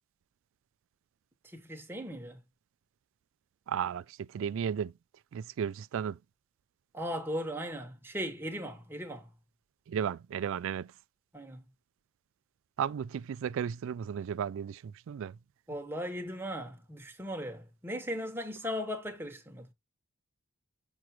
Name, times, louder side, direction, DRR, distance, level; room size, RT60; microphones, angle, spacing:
voice 1, 1.5-2.4 6.9-9.3 11.3-11.6 15.7-19.7, equal, 10° right, 1.1 m, -38 dB
voice 2, 3.7-4.9 5.3-6.2 9.9-10.9 12.8-15.4, right 8 dB, 65° right, 0.3 m, -34 dB
6.2 x 6.0 x 2.9 m
head